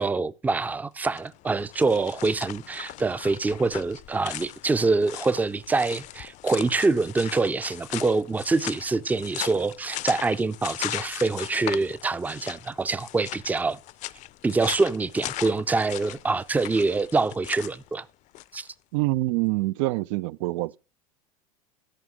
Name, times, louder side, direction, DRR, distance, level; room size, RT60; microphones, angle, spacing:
voice 1, 0.0-13.8 14.4-18.1 18.5-18.7, right 3 dB, 10° right, 0.5 m, -25 dB
sound 1, 1.1-18.7, left 15 dB, 45° left, 0.5 m, -38 dB
voice 2, 18.9-20.8, right 19 dB, 65° right, 0.4 m, -25 dB
13.0 x 5.2 x 6.3 m
hypercardioid pair, 95°, 18 cm